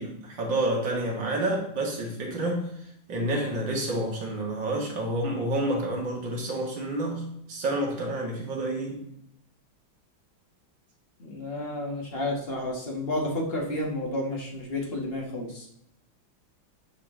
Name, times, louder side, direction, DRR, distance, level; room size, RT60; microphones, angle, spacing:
voice 1, 0.0-2.7 3.1-9.1, right 1 dB, 65° right, -1 dB, 2.6 m, -29 dB
voice 2, 11.2-15.7, left 1 dB, 30° left, 0 dB, 1.8 m, -31 dB
9.9 x 5.1 x 3.8 m, 0.74 s
omnidirectional pair, 2.2 m